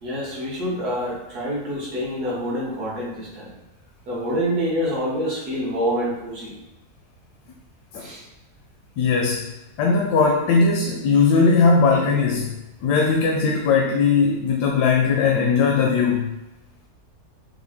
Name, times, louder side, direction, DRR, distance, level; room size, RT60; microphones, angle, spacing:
voice 1, 0.0-3.6 4.1-6.5 8.0-8.2, equal, 75° right, -5 dB, 1.8 m, -26 dB
voice 2, 9.0-9.5 9.8-12.5 12.8-16.3, left 4 dB, 85° left, 1 dB, 1.1 m, -19 dB
5.6 x 2.1 x 3.5 m, 0.94 s
omnidirectional pair, 1.7 m